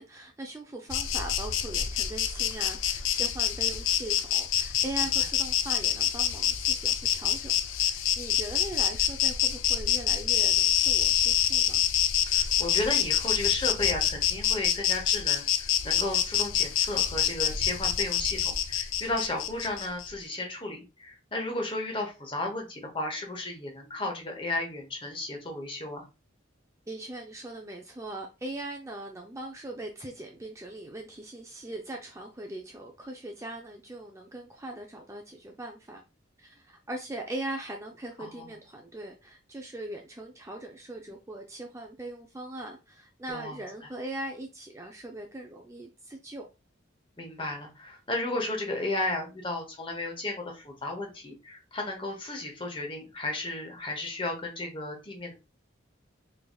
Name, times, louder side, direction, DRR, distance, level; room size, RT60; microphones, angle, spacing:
voice 1, 0.0-11.8 26.9-36.0 36.4-46.4, right 1 dB, 15° right, 2 dB, 0.4 m, -40 dB
Insect, 0.9-20.1, left 10 dB, 80° left, 0.4 m, -27 dB
voice 2, 12.2-26.1 38.2-38.5 43.3-43.6 47.2-55.3, left 2 dB, 25° left, 2 dB, 0.9 m, -34 dB
3.7 x 3.3 x 2.3 m, 0.27 s
head